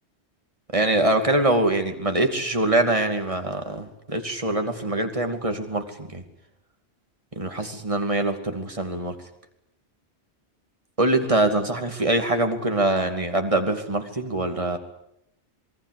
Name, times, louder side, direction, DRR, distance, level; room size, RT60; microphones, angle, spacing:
voice 1, 0.7-6.2 7.4-9.1 11.0-14.8, right 2 dB, 30° right, 6 dB, 2.7 m, -24 dB
27.0 x 21.0 x 8.4 m, 0.77 s
omnidirectional pair, 1.1 m